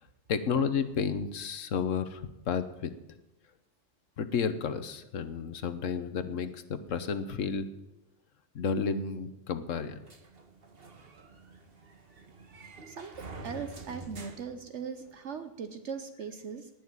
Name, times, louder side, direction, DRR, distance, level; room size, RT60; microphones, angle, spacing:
voice 1, 0.3-2.9 4.2-7.7 8.5-9.9, left 6 dB, 80° left, 11 dB, 1.4 m, -31 dB
sound 1, 10.1-15.3, right 2 dB, 50° right, 1.8 m, -48 dB
voice 2, 12.9-16.7, right 6 dB, 65° right, 9 dB, 1.2 m, -40 dB
19.0 x 6.4 x 9.4 m, 0.95 s
omnidirectional pair, 1.3 m